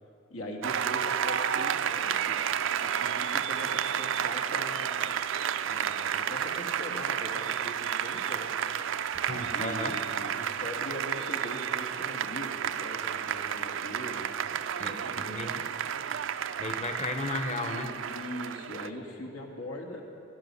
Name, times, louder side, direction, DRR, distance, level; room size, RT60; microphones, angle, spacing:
voice 1, 0.3-2.5 2.8-5.1 5.7-8.8 9.5-14.3 14.9-15.5 18.0-20.0, left 1 dB, 80° left, 1 dB, 2.1 m, -41 dB
Applause, 0.6-18.9, right 8 dB, 60° right, 0.4 m, -31 dB
voice 2, 9.3-10.0 14.8-15.7 16.6-17.9, left 2 dB, 30° left, 6 dB, 1.0 m, -35 dB
18.0 x 12.0 x 5.6 m, 2.5 s
head